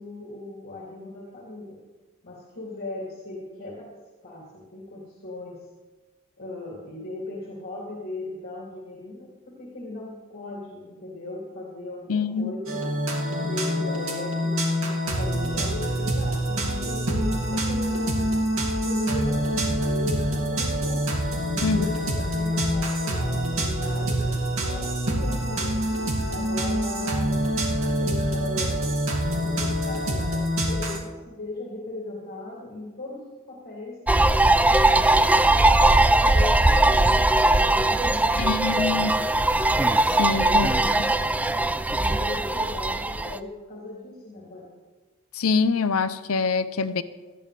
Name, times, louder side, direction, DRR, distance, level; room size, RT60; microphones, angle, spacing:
voice 1, 0.0-1.8 2.2-3.9 4.2-5.6 6.4-12.8 13.4-18.2 18.8-21.0 21.5-25.7 26.3-27.4 28.0-28.7 29.3-34.4 34.7-39.1 40.0-41.2 41.9-44.7, left 2 dB, 50° left, -5 dB, 2.9 m, -38 dB
voice 2, 12.1-12.5 21.6-21.9 38.4-39.2 40.2-40.7 45.3-47.0, left 5 dB, 80° left, 13 dB, 0.6 m, -24 dB
sound 1, 12.7-31.0, equal, 70° right, 2.5 m, -26 dB
sound 2, 34.1-43.4, right 2 dB, 5° right, 0.3 m, -20 dB
18.5 x 13.0 x 3.4 m, 1.3 s
head